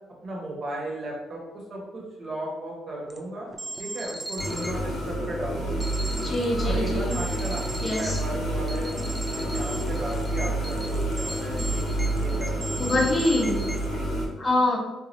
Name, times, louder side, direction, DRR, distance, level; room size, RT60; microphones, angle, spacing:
voice 1, 0.2-3.5 3.8-5.9 6.6-7.6 8.0-11.8 12.1-12.9 13.9-14.1, right 1 dB, 50° right, -3 dB, 1.0 m, -35 dB
sound 1, 3.1-3.2 3.5-4.8 5.8-6.4 7.1-8.2 8.7-13.8, right 1 dB, 10° right, 0.4 m, -37 dB
sound 2, 4.4-14.3, right 1 dB, 80° left, 1.0 m, -29 dB
voice 2, 6.2-7.2 7.8-8.2 12.8-13.6 14.4-14.8, left 1 dB, 35° left, -2 dB, 0.7 m, -24 dB
3.1 x 2.5 x 2.6 m, 1.0 s
cardioid pair, 90°, 0 cm